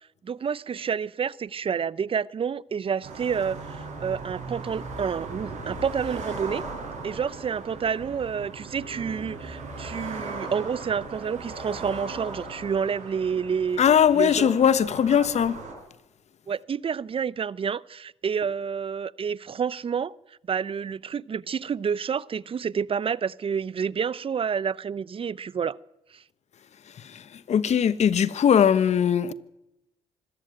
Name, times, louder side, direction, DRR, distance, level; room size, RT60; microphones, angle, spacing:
voice 1, 0.2-6.6 7.0-14.6 16.5-25.8 26.1-26.2, right 7 dB, 45° right, 0.7 m, -29 dB
sound 1, 3.0-15.7, right 3 dB, 65° right, 6.8 m, -38 dB
voice 2, 13.8-15.6 27.0-29.3, left 8 dB, 60° left, 1.2 m, -20 dB
25.0 x 13.0 x 9.1 m
supercardioid pair, 60°, 13 cm